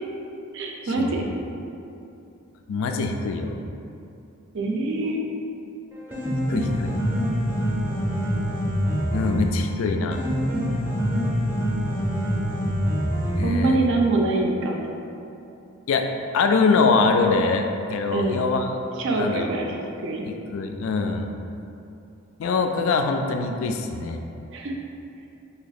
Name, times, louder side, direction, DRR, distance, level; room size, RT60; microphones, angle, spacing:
voice 1, 0.5-1.3 4.5-5.2 13.4-14.8 18.1-18.4 19.0-19.7 20.0-20.3 24.5-24.7, right 2 dB, 60° right, 0 dB, 0.4 m, -24 dB
voice 2, 2.7-3.6 6.5-6.9 9.1-10.2 13.4-13.8 15.9-16.0 16.3-18.7 19.2-19.5 20.3-21.3 22.4-24.2, left 4 dB, 65° left, 4 dB, 0.3 m, -23 dB
Piano, 5.9-13.9, equal, 10° right, 0.6 m, -25 dB
2.9 x 2.8 x 4.0 m, 2.7 s
head